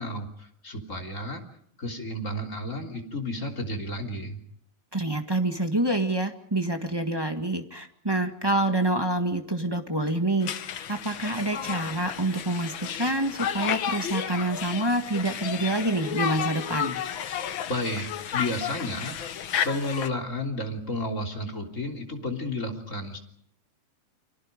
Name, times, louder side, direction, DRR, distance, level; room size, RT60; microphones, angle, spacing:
voice 1, 0.0-1.4 1.8-4.4 17.7-19.2 19.6-23.2, left 1 dB, 25° left, 2 dB, 3.5 m, -32 dB
voice 2, 4.9-10.5 10.9-17.0, right 1 dB, 15° right, 4 dB, 1.0 m, -27 dB
Conversation, 10.4-20.1, left 9 dB, 60° left, 1.4 m, -32 dB
29.5 x 25.5 x 5.2 m, 0.69 s
omnidirectional pair, 3.4 m